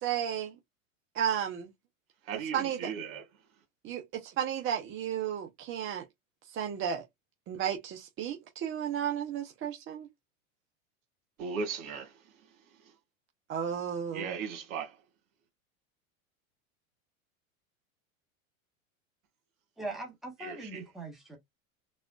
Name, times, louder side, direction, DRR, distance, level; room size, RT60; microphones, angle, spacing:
voice 1, 0.0-0.5 1.1-1.7 2.3-2.9 3.8-6.0 6.5-7.0 7.5-10.1 13.5-14.3, right 9 dB, 30° right, 0.7 m, -33 dB
voice 2, 2.3-3.2 11.4-12.1 14.1-15.0 20.4-20.8, right 5 dB, 75° right, 1.7 m, -37 dB
voice 3, 19.8-21.4, right 2 dB, ahead, 1.1 m, -41 dB
4.1 x 2.4 x 2.3 m
hypercardioid pair, 115°, 41 cm